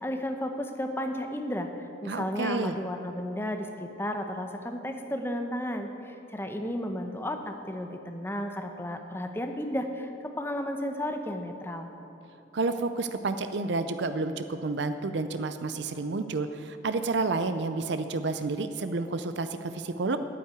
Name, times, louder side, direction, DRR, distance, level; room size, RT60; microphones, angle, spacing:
voice 1, 0.0-1.7 2.0-11.9, left 1 dB, 10° left, 5 dB, 0.8 m, -33 dB
voice 2, 2.1-2.8 12.5-20.2, right 3 dB, 70° right, 10 dB, 0.5 m, -30 dB
9.3 x 8.6 x 9.0 m, 2.9 s
head